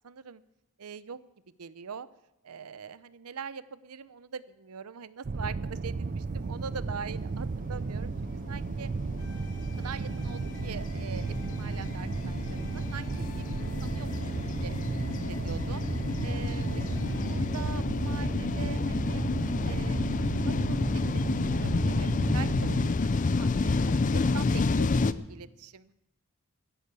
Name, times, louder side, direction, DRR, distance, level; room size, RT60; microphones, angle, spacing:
voice 1, 0.0-0.4 0.8-1.2 1.6-2.1 2.4-8.1 8.5-8.9 9.8-14.2 14.6-14.7 15.3-15.9 16.2-19.2 19.6-20.1 20.4-25.9, right 6 dB, 90° right, 16 dB, 0.6 m, -43 dB
sound 1, 5.2-22.9, right 4 dB, 40° right, 0.4 m, -34 dB
sound 2, 7.4-25.1, left 3 dB, 35° left, 0.4 m, -30 dB
sound 3, 9.2-17.6, left 1 dB, 90° left, 3.0 m, -52 dB
13.0 x 11.5 x 6.9 m, 0.87 s
head